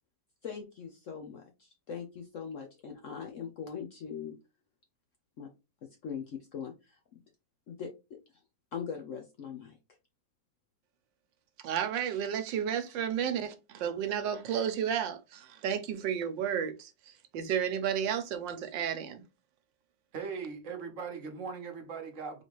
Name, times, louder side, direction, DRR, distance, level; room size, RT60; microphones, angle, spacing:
voice 1, 0.4-4.4 5.4-5.5 5.8-7.2 7.7-8.2 8.7-9.8, left 7 dB, 65° left, 0.8 m, -41 dB
voice 2, 11.6-19.2, right 8 dB, 85° right, 1.4 m, -32 dB
voice 3, 20.1-22.4, right 5 dB, 50° right, 1.1 m, -39 dB
4.1 x 3.2 x 3.0 m
omnidirectional pair, 1.9 m